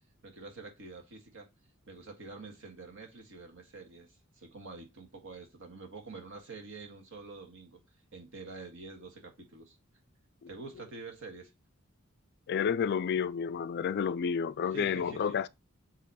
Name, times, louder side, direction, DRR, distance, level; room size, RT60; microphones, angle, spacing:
voice 1, 0.2-1.5 1.9-7.8 8.1-9.8 10.5-11.5 14.7-15.4, right 3 dB, 65° right, 1.7 m, -47 dB
voice 2, 12.5-15.5, left 7 dB, 50° left, 0.3 m, -30 dB
7.5 x 3.0 x 4.2 m
head